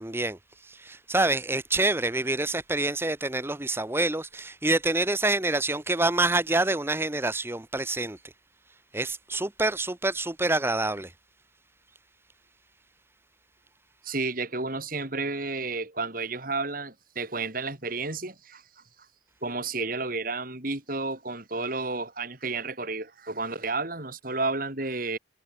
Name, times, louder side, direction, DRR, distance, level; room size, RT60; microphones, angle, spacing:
voice 1, 0.0-8.3 8.9-11.1, right 2 dB, 15° right, 0.9 m, -27 dB
voice 2, 14.0-18.6 19.4-25.2, right 3 dB, 50° right, 4.3 m, -31 dB
head